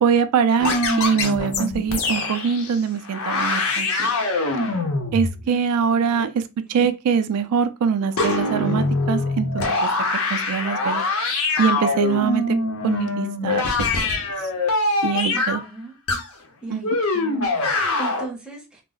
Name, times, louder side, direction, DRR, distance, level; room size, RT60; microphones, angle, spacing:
voice 1, 0.0-4.1 5.1-6.4 6.7-9.9 10.3-11.0 11.6-12.6 12.8-13.6 14.0-14.1 15.0-15.6 16.7-16.8, right 6 dB, 80° right, 0.3 m, -23 dB
sound 1, 0.6-2.8 3.0-5.4 8.2-15.6 16.1-16.2 16.8-18.3, left 3 dB, 65° left, 0.7 m, -23 dB
voice 2, 6.0-6.3 6.8-6.9 15.3-15.9 16.6-18.8, right 2 dB, 5° right, 0.6 m, -37 dB
2.3 x 2.0 x 3.8 m
head